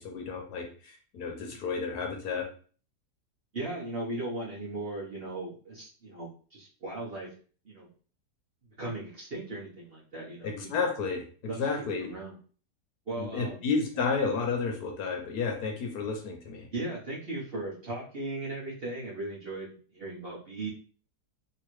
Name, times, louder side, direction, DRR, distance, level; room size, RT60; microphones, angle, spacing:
voice 1, 0.0-2.5 10.4-11.2 11.6-12.1 13.2-16.7, left 5 dB, 70° left, 2 dB, 1.1 m, -31 dB
voice 2, 3.5-7.3 7.6-7.9 8.8-10.7 11.4-11.6 11.9-12.4 13.1-13.6 16.7-20.7, right 2 dB, 45° right, -6 dB, 0.9 m, -37 dB
3.0 x 2.9 x 3.0 m, 0.42 s
omnidirectional pair, 1.9 m